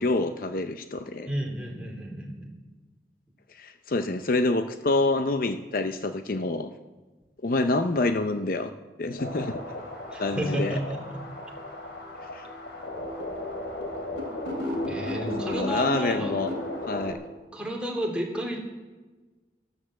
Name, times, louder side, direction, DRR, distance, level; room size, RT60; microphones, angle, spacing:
voice 1, 0.0-1.3 3.5-6.7 7.4-8.7 9.0-9.9 10.2-10.8 12.3-12.5 15.4-16.5 16.8-17.2, left 2 dB, 50° left, 9 dB, 0.6 m, -27 dB
voice 2, 1.3-2.5 10.1-11.2 14.9-16.3 17.5-18.6, equal, 5° right, -1 dB, 2.9 m, -31 dB
sound 1, 9.2-17.1, left 1 dB, 80° left, 3.1 m, -35 dB
12.5 x 12.5 x 7.6 m, 1.3 s
head